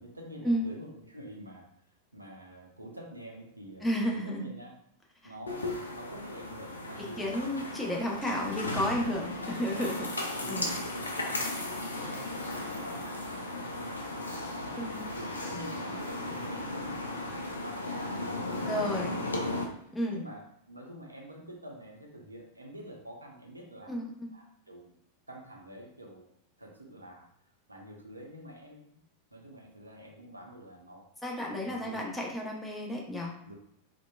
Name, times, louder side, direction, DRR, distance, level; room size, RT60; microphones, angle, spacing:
voice 1, 0.0-1.7 2.1-4.7 5.2-7.6 8.2-8.8 9.7-10.0 10.3-14.8 15.1-24.0 24.3-24.9 25.3-26.3 26.6-27.3 27.7-29.0 29.3-31.0 31.6-32.1 33.4-33.6, right 1 dB, 85° right, -1 dB, 0.5 m, -47 dB
voice 2, 3.8-4.5 7.2-10.7 14.8-15.0 18.7-19.1 19.9-20.2 23.9-24.3 31.2-33.3, equal, 5° left, -2 dB, 0.6 m, -32 dB
sound 1, 5.5-19.6, left 2 dB, 75° left, 0.4 m, -36 dB
sound 2, 6.7-17.2, equal, 55° left, 0.9 m, -53 dB
2.8 x 2.1 x 2.2 m, 0.75 s
figure-of-eight pair, 90°, 0 cm